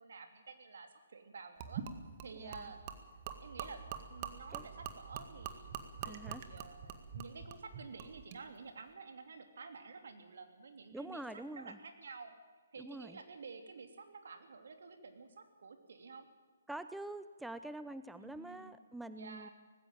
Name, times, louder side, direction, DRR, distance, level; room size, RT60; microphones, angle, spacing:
voice 1, 0.0-1.8 2.2-2.8 3.4-5.7 6.0-12.3 12.7-16.3 18.2-18.7 19.1-19.5, right 4 dB, 70° right, 7 dB, 3.0 m, -51 dB
Gurgling / Liquid, 1.6-8.4, right 8 dB, 40° right, 1.8 m, -45 dB
voice 2, 2.4-2.7 4.5-4.6 6.0-6.4 10.9-11.8 12.8-13.2 16.7-19.5, right 1 dB, 5° right, 12 dB, 0.6 m, -46 dB
19.5 x 15.5 x 8.9 m, 1.4 s
hypercardioid pair, 140°, 0 cm